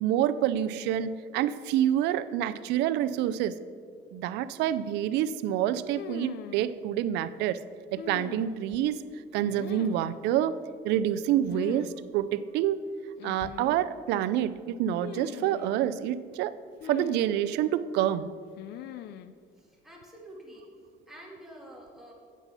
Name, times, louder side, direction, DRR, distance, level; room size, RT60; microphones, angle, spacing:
voice 1, 0.0-3.6 4.1-7.6 7.9-9.0 9.3-10.6 10.8-12.8 13.2-16.5 16.8-18.3, right 11 dB, 85° right, 15 dB, 0.4 m, -27 dB
sound 1, 6.0-6.7 8.0-8.8 9.5-10.2 11.5-11.9 12.2-12.3 13.2-13.9 15.0-15.8 16.8-17.6 18.6-19.3, left 10 dB, 75° left, 0.5 m, -41 dB
voice 2, 19.6-20.7 21.1-22.1, right 1 dB, ahead, -3 dB, 2.3 m, -48 dB
8.2 x 8.1 x 5.5 m, 2.1 s
cardioid pair, 110°, 17 cm